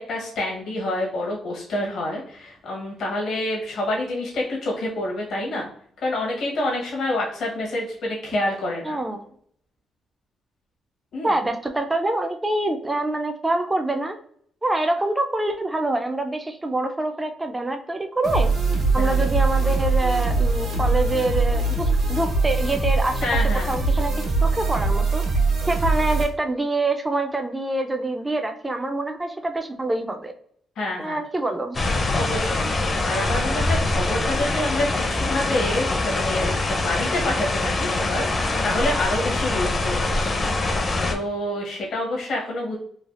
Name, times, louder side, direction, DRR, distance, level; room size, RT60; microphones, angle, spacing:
voice 1, 0.0-5.7 6.0-9.0 11.1-11.4 19.0-19.2 23.2-23.7 30.8-31.2 32.1-42.8, left 1 dB, 70° left, -3 dB, 0.9 m, -28 dB
voice 2, 8.8-9.2 11.2-14.2 14.6-18.5 18.9-24.1 24.4-25.2 25.7-30.3 31.0-31.8, right 2 dB, 15° right, 5 dB, 0.4 m, -25 dB
sound 1, 18.2-26.2, right 3 dB, 80° right, 1.1 m, -22 dB
sound 2, 31.7-41.1, left 2 dB, 40° left, 0.5 m, -24 dB
3.2 x 2.3 x 2.4 m, 0.63 s
cardioid pair, 85°, 0 cm